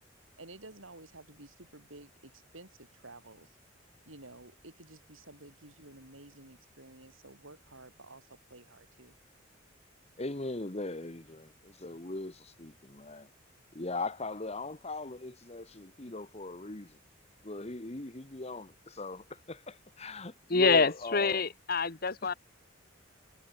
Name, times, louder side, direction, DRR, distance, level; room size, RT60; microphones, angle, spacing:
voice 1, 0.4-3.6 4.1-9.1, right 2 dB, 85° right, 7.1 m, -52 dB
voice 2, 10.2-13.3 13.7-17.0 17.4-21.5, left 2 dB, 30° left, 1.3 m, -39 dB
voice 3, 20.5-22.3, left 4 dB, 50° left, 1.4 m, -26 dB
head